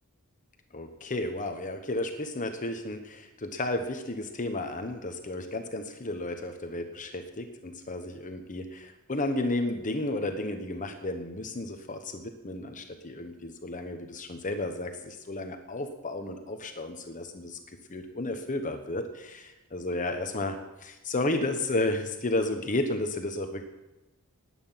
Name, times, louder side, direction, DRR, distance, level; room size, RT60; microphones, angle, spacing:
voice 1, 0.7-17.6 17.9-23.6, left 2 dB, 35° left, 6 dB, 1.1 m, -33 dB
18.5 x 9.1 x 5.8 m, 1.0 s
head